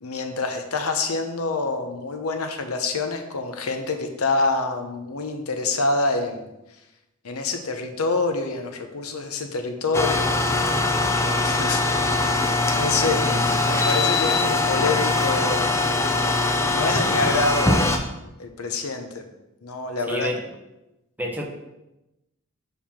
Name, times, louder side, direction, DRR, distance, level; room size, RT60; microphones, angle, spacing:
voice 1, 0.0-6.5 7.2-10.3 11.4-11.8 12.7-13.4 13.6-15.8 16.1-18.1 18.4-19.2 19.6-20.3, left 3 dB, 85° left, 5 dB, 0.9 m, -26 dB
sound 1, 9.9-18.0, left 2 dB, 15° left, 0.6 m, -22 dB
voice 2, 13.0-13.4 20.1-20.4 21.2-21.5, equal, 10° right, 0 dB, 0.9 m, -29 dB
5.5 x 4.8 x 5.8 m, 0.95 s
head